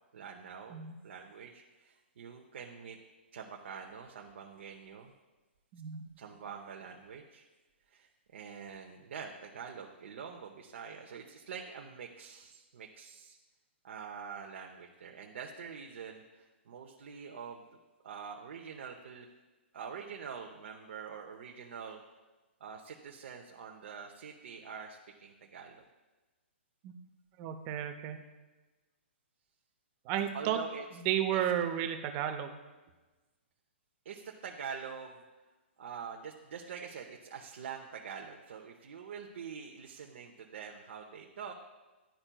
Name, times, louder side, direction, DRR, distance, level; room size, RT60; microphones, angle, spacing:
voice 1, 0.1-0.7 1.0-3.0 3.3-5.1 6.2-7.5 7.9-13.4 13.8-17.6 18.0-19.3 19.7-22.0 22.6-25.9 30.3-30.8 31.3-31.4 34.0-35.2 35.8-41.5, right 6 dB, 65° right, 1 dB, 0.7 m, -45 dB
voice 2, 5.7-6.0 26.8-27.0 27.4-28.3 30.1-30.6 30.9-32.6, right 10 dB, 30° right, 7 dB, 0.6 m, -33 dB
11.5 x 4.4 x 2.3 m, 1.2 s
hypercardioid pair, 145°, 7 cm